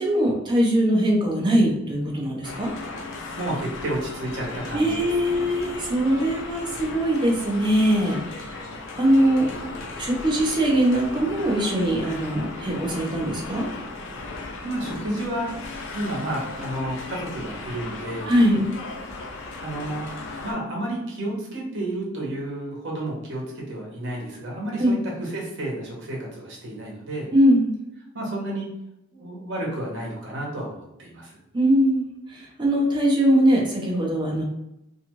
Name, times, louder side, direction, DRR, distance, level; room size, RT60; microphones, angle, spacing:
voice 1, 0.0-2.7 4.7-8.6 9.0-9.5 9.9-13.7 18.3-18.7 24.8-25.0 27.3-27.7 31.5-34.4, equal, 25° right, -2 dB, 0.7 m, -21 dB
sound 1, 2.4-20.5, left 3 dB, 65° left, 0.5 m, -36 dB
voice 2, 3.3-5.6 14.6-15.5 15.9-18.3 19.6-20.1 20.4-27.3 28.1-28.7 29.1-31.4, right 1 dB, 65° right, -2 dB, 0.9 m, -31 dB
2.6 x 2.4 x 2.9 m, 0.86 s
head